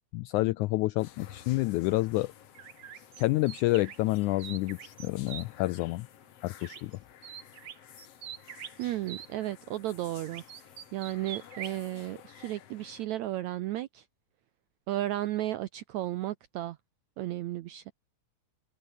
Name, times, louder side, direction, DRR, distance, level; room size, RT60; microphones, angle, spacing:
voice 1, 0.1-2.3 3.2-6.1 6.4-7.0, left 19 dB, 90° left, 1.7 m, -28 dB
sound 1, 1.0-13.1, left 10 dB, 55° left, 2.0 m, -53 dB
sound 2, 2.6-5.5 6.6-7.0 7.2-9.3 10.3-11.8, right 9 dB, 55° right, 1.4 m, -44 dB
voice 2, 8.8-10.4 10.9-14.0 14.9-16.8 17.2-17.9, right 14 dB, 75° right, 1.7 m, -34 dB
omnidirectional pair, 4.0 m